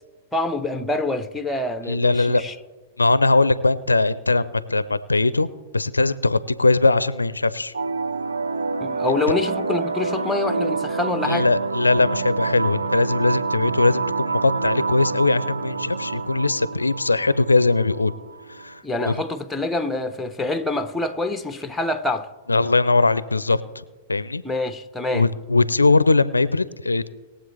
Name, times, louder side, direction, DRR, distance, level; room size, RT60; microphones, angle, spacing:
voice 1, 0.3-2.5 8.8-11.5 18.8-22.3 24.4-25.3, left 2 dB, 5° left, 0.9 m, -26 dB
voice 2, 1.9-2.4 3.0-5.5 5.7-7.7 11.2-18.1 18.5-18.8 19.1-19.2 22.5-23.8 24.1-24.4 25.1-27.1, left 3 dB, 90° left, 0.4 m, -20 dB
sound 1, 7.7-18.7, right 3 dB, 85° right, 0.7 m, -27 dB
21.5 x 7.6 x 3.4 m
figure-of-eight pair, 100°, 0 cm